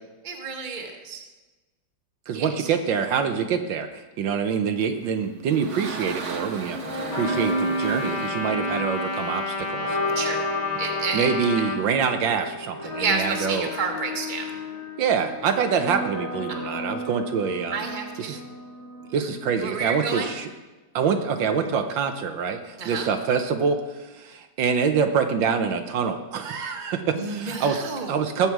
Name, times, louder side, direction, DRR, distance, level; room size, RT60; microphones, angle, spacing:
voice 1, 0.2-1.2 2.3-2.7 10.1-10.4 10.8-11.3 13.0-14.6 16.5-16.6 17.7-18.4 19.6-20.3 22.8-23.1 27.1-28.2, right 4 dB, 25° right, 2 dB, 1.3 m, -30 dB
voice 2, 2.3-6.8 7.1-10.0 11.1-13.7 15.0-17.9 18.2-18.4 19.1-20.5 20.9-28.5, right 6 dB, 75° right, 6 dB, 1.5 m, -25 dB
sound 1, 5.0-9.7, right 4 dB, 40° right, 1.3 m, -37 dB
sound 2, 6.7-19.6, left 1 dB, 75° left, 2.8 m, -32 dB
Trumpet, 7.1-11.8, left 3 dB, 30° left, 1.3 m, -31 dB
18.5 x 7.2 x 4.7 m, 1.2 s
omnidirectional pair, 2.1 m